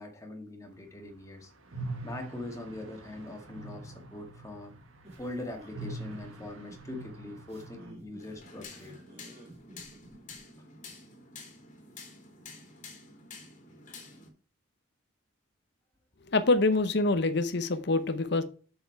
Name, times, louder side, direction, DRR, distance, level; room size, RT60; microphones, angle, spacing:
voice 1, 0.0-1.5 2.0-4.7 5.2-8.9, left 1 dB, 15° left, 2 dB, 1.8 m, -42 dB
sound 1, 1.7-7.9, right 2 dB, 80° right, 1.5 m, -44 dB
sound 2, 5.0-10.4, right 1 dB, 30° right, 2.6 m, -52 dB
sound 3, 8.2-14.3, left 4 dB, 40° left, 2.5 m, -49 dB
voice 2, 16.3-18.4, left 2 dB, 55° left, 9 dB, 0.8 m, -25 dB
6.9 x 6.7 x 4.6 m, 0.39 s
head